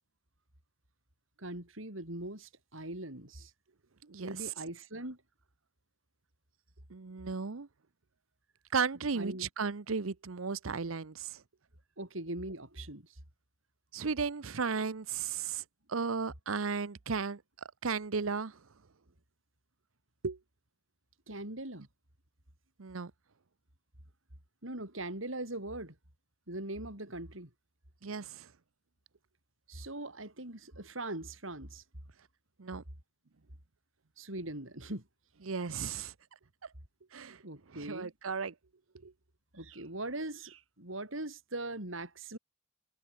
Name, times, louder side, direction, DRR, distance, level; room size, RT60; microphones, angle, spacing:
voice 1, 1.4-3.5 4.2-5.2 9.1-9.5 12.0-13.1 21.3-21.9 24.6-25.9 26.5-27.5 29.7-31.8 34.2-35.0 37.4-38.1 39.5-42.4, right 2 dB, 70° right, 6.1 m, -41 dB
voice 2, 4.0-4.5 6.9-7.7 8.7-11.4 13.9-15.6 15.9-17.4 17.8-18.6 20.2-20.4 22.8-23.1 28.0-28.5 32.6-32.8 35.4-36.1 37.1-37.4 37.7-38.5 39.0-39.1, right 5 dB, 90° right, 0.9 m, -35 dB
head